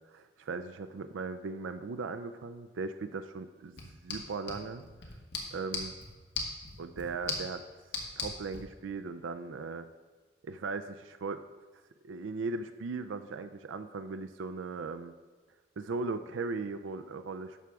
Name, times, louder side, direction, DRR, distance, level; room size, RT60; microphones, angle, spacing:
voice 1, 0.1-4.8 5.5-5.9 6.8-7.6 8.2-9.9 10.4-11.4 12.0-15.1 15.8-17.6, right 4 dB, 90° right, 10 dB, 0.4 m, -38 dB
sound 1, 3.7-8.6, left 4 dB, 65° left, 1.4 m, -40 dB
11.0 x 6.1 x 3.5 m, 1.4 s
head